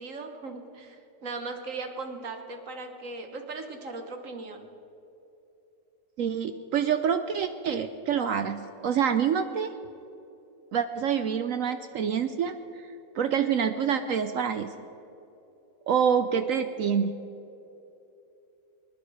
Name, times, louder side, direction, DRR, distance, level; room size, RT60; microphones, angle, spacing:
voice 1, 0.0-4.7, right 3 dB, 50° right, 5 dB, 1.4 m, -38 dB
voice 2, 6.2-9.7 10.7-12.5 13.1-14.7 15.9-17.2, right 7 dB, 70° right, 9 dB, 0.7 m, -26 dB
23.5 x 10.0 x 4.8 m, 2.9 s
omnidirectional pair, 1.9 m